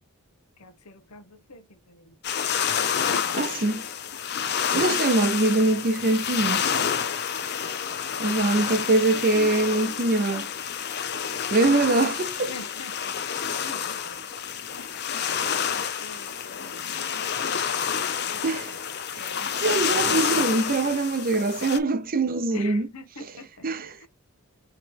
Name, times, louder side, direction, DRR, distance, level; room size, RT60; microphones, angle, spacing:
sound 1, 2.2-21.8, left 8 dB, 50° left, 0.7 m, -29 dB
voice 1, 3.3-3.8 4.7-6.8 8.2-10.5 11.5-12.6 18.4-18.8 19.1-19.3 19.6-22.9 23.2-24.0, right 2 dB, 40° right, 0.6 m, -23 dB
voice 2, 12.5-13.1 13.6-14.1 15.4-17.6 18.3-18.4 19.1-19.6 22.5-23.5, left 2 dB, 85° left, 1.0 m, -43 dB
4.7 x 3.2 x 3.5 m
head